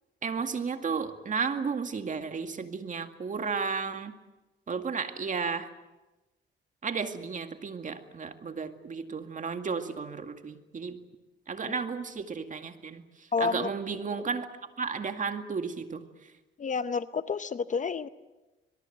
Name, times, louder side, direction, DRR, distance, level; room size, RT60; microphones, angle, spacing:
voice 1, 0.2-4.1 4.7-5.7 6.8-11.0 11.5-14.5 14.8-16.1, right 5 dB, 40° right, 7 dB, 2.1 m, -33 dB
voice 2, 13.3-13.7 14.1-14.2 16.6-18.1, left 5 dB, 40° left, 13 dB, 0.9 m, -30 dB
22.5 x 22.5 x 8.0 m, 1.1 s
cardioid pair, 90°, 20 cm